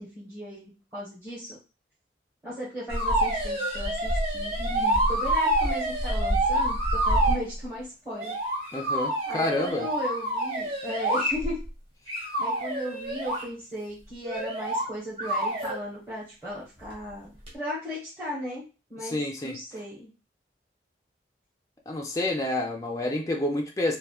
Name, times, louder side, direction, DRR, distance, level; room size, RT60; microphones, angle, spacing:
voice 1, 0.0-1.6 2.4-8.4 9.3-11.6 12.4-18.6 18.9-19.2 19.4-20.1, equal, 15° right, 1.1 m, -36 dB
sound 1, 2.9-7.4 8.2-11.7 12.1-13.4 14.2-14.9 15.2-15.8 17.5-17.6, right 1 dB, 30° right, 1.1 m, -27 dB
voice 2, 8.7-9.9 19.0-19.6 21.9-24.0, left 1 dB, 20° left, 0.3 m, -28 dB
3.4 x 2.1 x 2.3 m
head